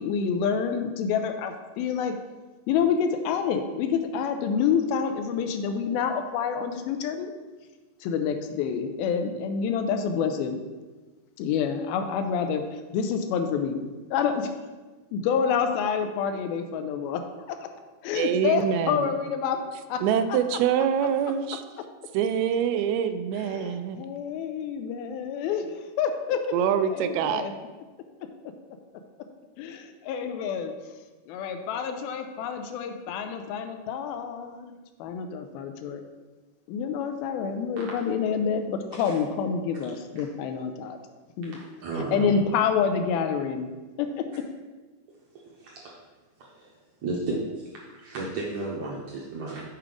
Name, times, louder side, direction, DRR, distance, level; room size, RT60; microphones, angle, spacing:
voice 1, 0.0-2.2 2.7-7.3 8.0-10.6 11.4-14.5 15.1-17.2 17.5-17.7 18.0-19.6 19.9-20.0 23.4-26.4 26.7-27.5 29.6-30.7 31.3-36.0 36.7-41.0 41.4-41.6 42.1-43.7 44.0-44.4, left 6 dB, 85° left, 7 dB, 2.5 m, -28 dB
voice 2, 18.1-19.1 20.0-21.6 22.1-24.1 26.5-27.4, right 8 dB, 90° right, 9 dB, 2.5 m, -25 dB
voice 3, 41.5-42.3 45.5-46.0 46.4-46.7 47.0-49.6, right 3 dB, 75° right, -3 dB, 1.7 m, -33 dB
7.7 x 4.8 x 5.1 m, 1.3 s
omnidirectional pair, 4.3 m